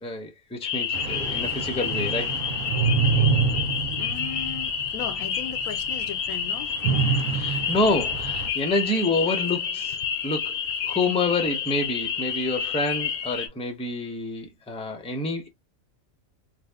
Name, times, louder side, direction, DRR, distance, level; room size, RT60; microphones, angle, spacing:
voice 1, 0.0-2.3 7.3-10.0 10.2-10.6 10.8-15.5, left 2 dB, 5° left, 0.5 m, -28 dB
sound 1, 0.6-13.5, left 7 dB, 60° left, 0.8 m, -29 dB
sound 2, 0.9-5.2 5.6-5.7 6.8-8.5, right 6 dB, 80° right, 1.0 m, -26 dB
voice 2, 3.9-6.7, left 8 dB, 90° left, 1.0 m, -37 dB
2.6 x 2.4 x 3.4 m
omnidirectional pair, 1.4 m